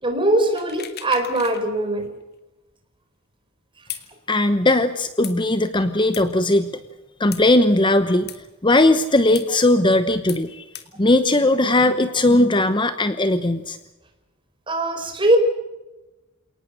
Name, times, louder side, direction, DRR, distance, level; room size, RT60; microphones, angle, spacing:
voice 1, 0.0-2.1 14.7-15.4, right 1 dB, 25° right, 5 dB, 4.5 m, -21 dB
sound 1, 0.6-1.6 2.0-2.1 3.9-4.1 5.2-5.4 6.1-6.2 7.3-7.4 8.3-8.4 9.3-9.5 10.3-10.4 10.7-10.9, left 11 dB, 50° left, 2.3 m, -36 dB
voice 2, 4.3-6.7 7.2-8.3 8.6-10.6 11.0-13.8, left 2 dB, 25° left, 11 dB, 1.0 m, -18 dB
29.0 x 19.0 x 6.6 m, 1.0 s
head